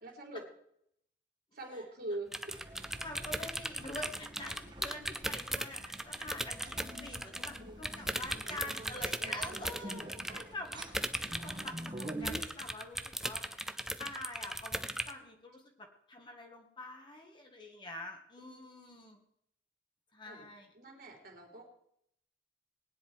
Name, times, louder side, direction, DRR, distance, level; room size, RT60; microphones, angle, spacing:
voice 1, 0.0-0.4 1.5-2.4 7.6-8.0 9.2-10.3 18.4-18.7 20.3-21.6, right 1 dB, 55° right, 2 dB, 3.4 m, -45 dB
sound 1, 2.3-7.6 7.8-15.1, right 1 dB, ahead, 0.6 m, -38 dB
sound 2, 2.5-12.4, right 1 dB, 25° right, 1.9 m, -47 dB
voice 2, 3.0-13.4 14.0-19.2 20.1-20.7, left 2 dB, 25° left, 3 dB, 1.9 m, -46 dB
19.5 x 10.0 x 4.8 m, 0.72 s
head